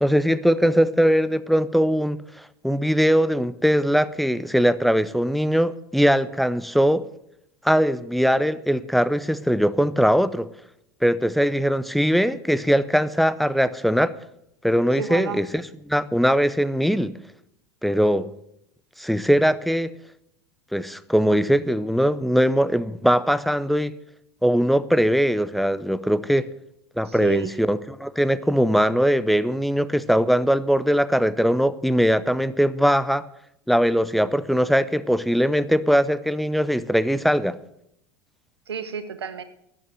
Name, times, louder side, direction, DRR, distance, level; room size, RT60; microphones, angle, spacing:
voice 1, 0.0-7.0 7.6-10.5 11.0-14.1 14.6-17.2 17.8-18.3 19.0-19.9 20.7-23.9 24.4-26.5 27.0-33.2 33.7-37.6, equal, ahead, 16 dB, 0.7 m, -21 dB
voice 2, 14.9-15.4 27.0-27.5 38.7-39.4, right 7 dB, 80° right, 11 dB, 1.2 m, -31 dB
12.5 x 8.9 x 7.7 m, 0.77 s
figure-of-eight pair, 80°, 13 cm